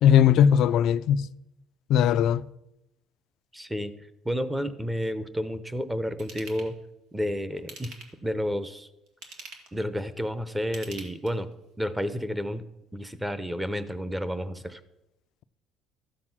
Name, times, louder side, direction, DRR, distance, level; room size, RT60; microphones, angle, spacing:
voice 1, 0.0-1.3 1.9-2.4, left 9 dB, 65° left, 0.4 m, -19 dB
voice 2, 3.5-3.9 4.2-6.7 7.1-8.0 8.2-8.9 9.7-11.5 11.8-12.6 12.9-14.8, equal, 5° right, 0.8 m, -30 dB
Ratchet pawl / Tools, 6.2-6.7 7.6-8.3 9.1-9.8 10.6-11.5 12.0-12.1, right 3 dB, 85° right, 2.1 m, -44 dB
13.0 x 7.6 x 6.0 m
cardioid pair, 130°, 0 cm